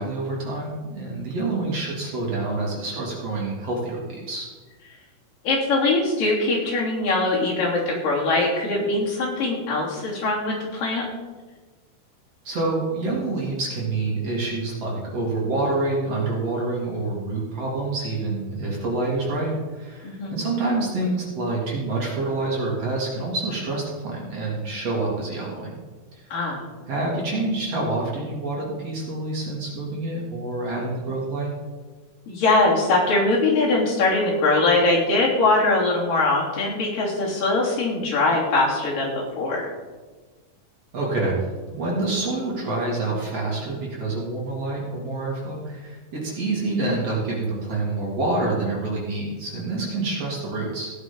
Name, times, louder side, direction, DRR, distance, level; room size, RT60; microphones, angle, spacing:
voice 1, 0.0-4.5 12.5-25.8 26.1-26.2 26.9-31.5 40.9-41.4 41.7-50.9, right 2 dB, 45° right, -3 dB, 3.5 m, -27 dB
voice 2, 5.4-11.0 20.0-20.4 26.3-26.6 32.3-39.7, left 2 dB, 60° left, -4 dB, 4.7 m, -22 dB
16.0 x 9.6 x 5.3 m, 1.3 s
omnidirectional pair, 4.4 m